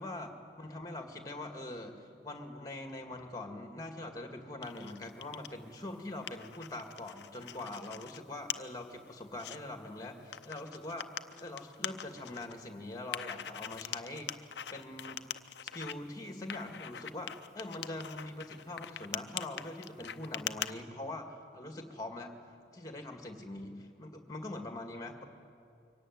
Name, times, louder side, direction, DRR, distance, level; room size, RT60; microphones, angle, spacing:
voice 1, 0.0-11.1 11.4-15.3 15.6-22.4 22.7-25.3, left 2 dB, 20° left, 5 dB, 2.0 m, -43 dB
sound 1, 4.6-5.5 5.9-8.2 8.5-8.6 9.1-9.6 10.3-12.5 13.1-15.9 16.5-20.7, left 10 dB, 65° left, 0.6 m, -41 dB
23.5 x 17.0 x 9.4 m, 2.5 s
head